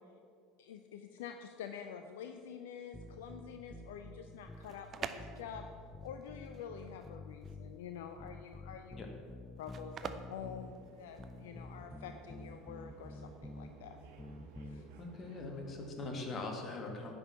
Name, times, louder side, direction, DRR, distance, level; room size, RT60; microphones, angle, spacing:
voice 1, 0.6-5.7 6.0-9.0 9.6-14.0 14.6-14.8, left 7 dB, 70° left, 7 dB, 0.5 m, -47 dB
sound 1, 2.9-4.7 5.2-7.8 8.2-10.8 11.2-13.7 14.2-14.8, left 2 dB, 15° left, 0.5 m, -49 dB
sound 2, 4.4-11.5, right 6 dB, 35° right, 0.6 m, -47 dB
sound 3, 10.0-15.9, right 4 dB, 60° right, 1.2 m, -57 dB
voice 2, 15.0-17.1, left 3 dB, 35° left, 2 dB, 2.0 m, -41 dB
9.9 x 6.3 x 7.0 m, 2.3 s
figure-of-eight pair, 70°, 0 cm